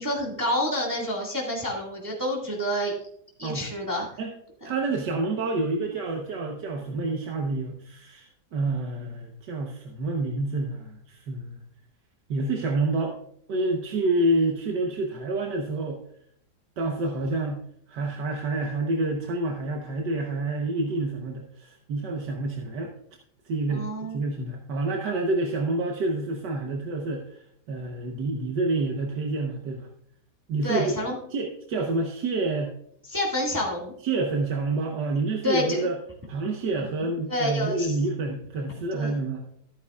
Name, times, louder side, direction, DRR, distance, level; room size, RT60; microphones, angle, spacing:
voice 1, 0.0-2.9 3.4-4.1 23.7-24.2 30.6-31.2 33.1-33.9 35.4-35.8 37.3-37.9 38.9-39.2, left 1 dB, 10° right, -3 dB, 1.8 m, -28 dB
voice 2, 4.6-11.6 12.3-13.2 13.5-16.0 16.8-17.6 17.9-22.9 23.5-23.9 24.1-29.9 30.5-31.0 31.3-32.7 34.0-36.0 36.3-39.4, right 2 dB, 80° right, 1 dB, 1.7 m, -28 dB
13.5 x 9.5 x 2.4 m, 0.69 s
omnidirectional pair, 1.8 m